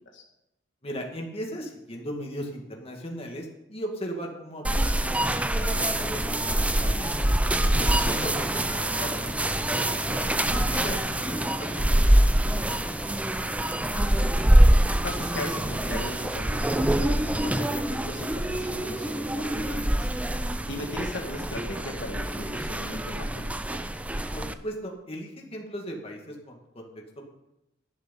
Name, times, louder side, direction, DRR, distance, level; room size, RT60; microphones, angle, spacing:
voice 1, 0.8-7.3 7.6-10.2 10.5-12.9 24.3-27.3, equal, 30° left, 1 dB, 2.2 m, -38 dB
sound 1, 4.6-24.5, right 1 dB, 5° right, 0.5 m, -25 dB
voice 2, 7.7-8.3 13.9-14.5 15.0-20.1 20.7-23.8, left 1 dB, 65° left, 1 dB, 1.7 m, -38 dB
11.5 x 11.0 x 5.5 m, 0.88 s
head